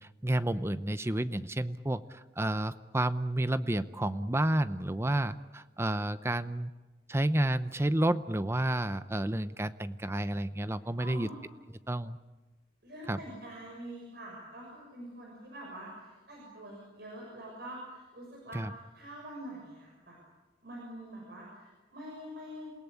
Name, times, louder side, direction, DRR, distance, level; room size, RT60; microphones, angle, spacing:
voice 1, 0.2-6.7 7.1-11.3 11.9-12.2 13.1-13.2 18.5-18.7, right 1 dB, 15° right, 13 dB, 0.7 m, -30 dB
voice 2, 11.0-11.4 12.8-20.2 20.6-22.7, right 1 dB, 60° right, -2 dB, 6.6 m, -45 dB
28.5 x 18.0 x 8.3 m, 1.2 s
head